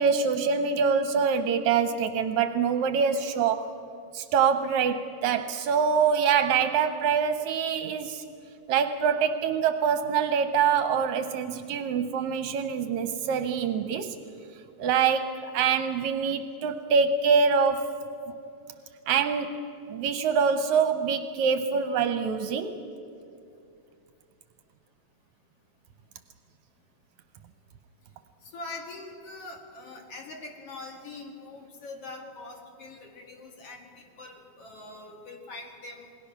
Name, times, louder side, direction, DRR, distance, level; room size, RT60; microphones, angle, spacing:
voice 1, 0.0-3.6 4.1-8.2 8.7-14.2 14.8-17.9 19.1-19.6 19.9-22.8, right 6 dB, 80° right, 9 dB, 2.1 m, -25 dB
voice 2, 28.5-36.1, left 2 dB, 55° left, 2 dB, 2.9 m, -43 dB
28.0 x 21.0 x 5.9 m, 2.6 s
omnidirectional pair, 3.4 m